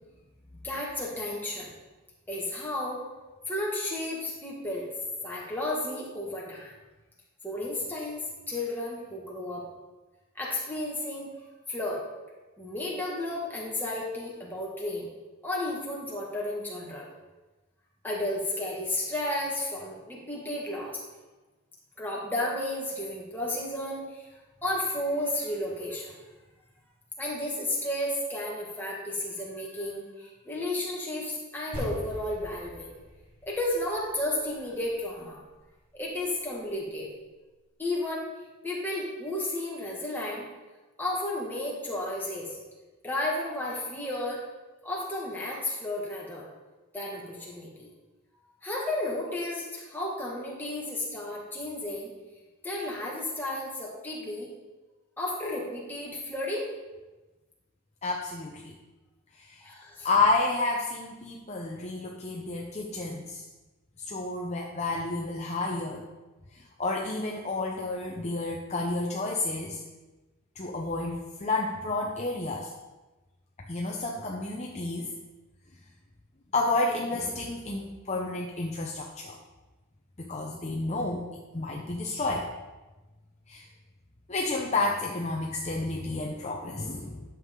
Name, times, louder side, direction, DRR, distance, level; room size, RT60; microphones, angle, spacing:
voice 1, 0.6-1.7 2.3-3.0 3.5-4.9 5.2-6.7 7.4-9.7 10.4-11.3 11.7-12.0 12.6-15.1 15.4-17.1 18.0-21.0 22.0-24.3 24.6-26.2 27.2-32.9 33.4-35.4 35.9-37.1 37.8-38.3 38.6-40.5 41.0-42.6 43.0-44.4 44.8-46.5 46.9-47.9 48.6-52.1 52.6-54.5 55.2-56.7 59.6-60.1, left 1 dB, 10° left, -4 dB, 1.9 m, -33 dB
sound 1, 31.7-36.3, equal, 25° right, 3.3 m, -43 dB
voice 2, 58.0-58.7 59.4-59.6 60.0-63.5 64.1-66.0 66.5-69.8 70.6-72.7 73.7-75.1 76.5-79.4 80.2-82.5 83.5-83.7 84.3-87.2, left 2 dB, 30° left, 0 dB, 0.7 m, -30 dB
11.5 x 7.3 x 3.8 m, 1.2 s
head